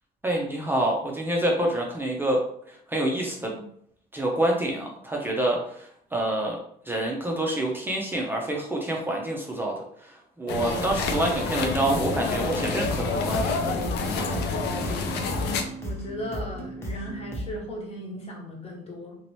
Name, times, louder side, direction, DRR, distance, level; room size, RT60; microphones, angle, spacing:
voice 1, 0.2-2.4 2.7-3.5 4.1-6.6 6.9-9.7 10.0-14.4, right 1 dB, 10° right, -1 dB, 0.5 m, -27 dB
sound 1, 10.5-15.6, left 3 dB, 75° left, 0.5 m, -28 dB
sound 2, 12.4-17.6, equal, 15° left, 0.8 m, -36 dB
voice 2, 15.8-19.2, equal, 35° left, -1 dB, 1.1 m, -36 dB
3.0 x 2.8 x 3.0 m, 0.68 s
cardioid pair, 110°, 17 cm